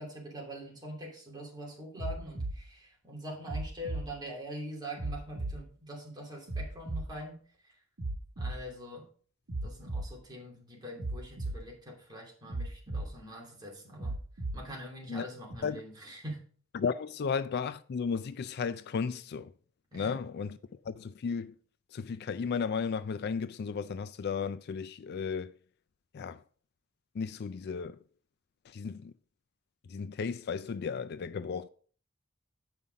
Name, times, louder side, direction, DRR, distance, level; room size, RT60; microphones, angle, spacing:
voice 1, 0.0-7.4 7.6-7.7 8.4-9.0 9.6-14.2 14.5-16.4 19.9-20.2, equal, 20° right, 2.8 m, -43 dB
sound 1, 2.0-2.6 3.5-4.1 5.0-5.6 6.5-7.1 8.0-8.6 9.5-10.1 11.0-11.6 12.5-13.1 14.0-14.6 15.5-15.6, right 2 dB, 80° right, 1.3 m, -35 dB
voice 2, 16.7-19.5 19.9-20.6 20.8-21.5 21.9-25.5 26.1-26.4 27.1-28.0 28.7-29.1 29.9-31.7, left 5 dB, 50° left, 0.4 m, -34 dB
8.4 x 5.6 x 5.1 m
head